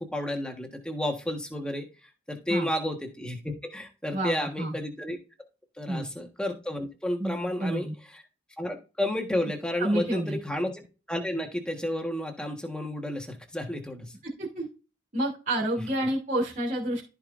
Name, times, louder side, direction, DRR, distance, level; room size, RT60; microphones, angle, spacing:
voice 1, 0.0-1.9 2.3-5.2 5.8-8.2 8.6-14.1, left 1 dB, 5° left, 3 dB, 1.4 m, -32 dB
voice 2, 4.1-4.8 5.9-6.1 7.2-7.9 9.8-10.4 14.4-14.7 15.1-17.0, right 1 dB, 45° right, -5 dB, 2.8 m, -29 dB
14.5 x 5.1 x 2.6 m, 0.33 s
head